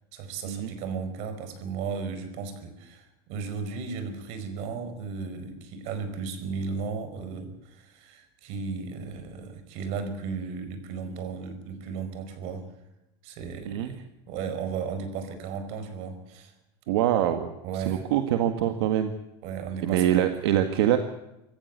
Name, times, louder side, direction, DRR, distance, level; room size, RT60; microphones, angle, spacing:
voice 1, 0.1-12.7 13.2-16.5 17.6-18.0 19.4-20.3, right 5 dB, 50° right, 10 dB, 4.9 m, -35 dB
voice 2, 16.9-17.5 17.7-19.1 19.8-21.0, right 11 dB, 75° right, 7 dB, 2.0 m, -24 dB
26.5 x 14.5 x 8.4 m, 0.91 s
supercardioid pair, 160°, 14 cm